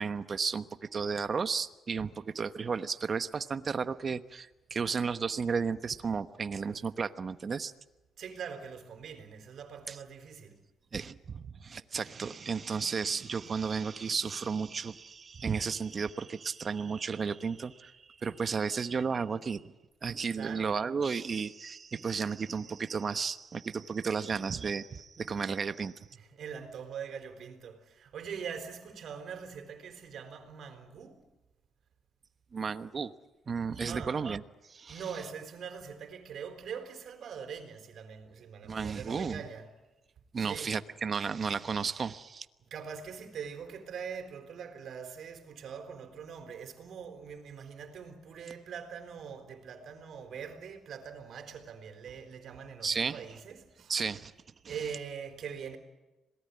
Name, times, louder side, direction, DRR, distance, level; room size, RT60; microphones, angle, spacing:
voice 1, 0.0-7.7 9.9-10.0 10.9-19.6 20.0-25.9 32.5-33.1 33.5-34.4 34.7-35.0 38.6-39.4 40.3-42.5 52.8-53.2 53.9-54.3 54.6-54.7, right 5 dB, 40° right, 1.1 m, -33 dB
voice 2, 8.2-10.6 20.3-20.7 26.1-31.2 33.8-34.3 34.9-39.7 40.4-40.8 42.7-53.9 54.6-55.8, right 7 dB, 65° right, 4.0 m, -43 dB
26.5 x 18.5 x 9.7 m
cardioid pair, 90°, 0 cm